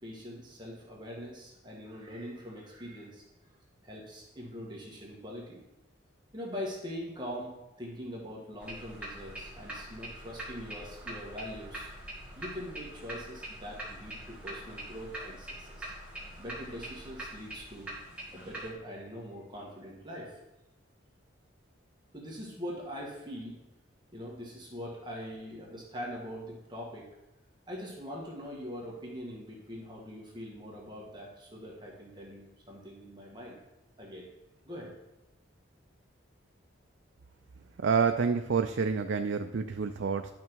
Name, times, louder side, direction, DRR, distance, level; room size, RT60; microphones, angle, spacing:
voice 1, 0.0-3.2 3.8-5.6 6.3-11.9 12.3-15.9 16.4-17.9 18.3-20.4 22.1-23.6 24.1-27.1 27.7-33.6 34.0-34.3 34.6-34.9, equal, 20° right, -3 dB, 1.6 m, -42 dB
sound 1, 8.6-18.7, right 1 dB, 5° right, 2.2 m, -43 dB
voice 2, 37.8-40.3, right 5 dB, 70° right, 7 dB, 0.4 m, -28 dB
10.5 x 6.0 x 4.6 m, 0.98 s
head